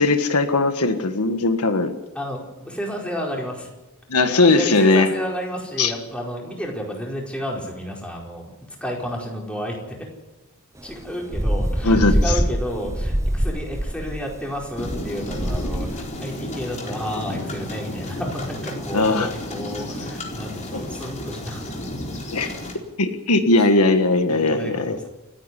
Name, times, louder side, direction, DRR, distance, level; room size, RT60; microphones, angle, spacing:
voice 1, 0.0-1.9 4.1-5.1 5.8-5.9 11.8-12.4 18.9-19.3 20.7-20.8 22.3-22.5 23.0-25.0, left 2 dB, 80° left, 8 dB, 1.6 m, -19 dB
voice 2, 2.7-3.7 4.3-8.5 8.8-9.8 10.8-21.7 24.3-25.1, equal, 5° left, -1 dB, 4.8 m, -31 dB
sound 1, 10.8-16.0, equal, 15° right, 0.9 m, -24 dB
sound 2, 14.8-22.7, left 1 dB, 35° left, 4.3 m, -32 dB
28.5 x 9.6 x 9.9 m, 1.0 s
head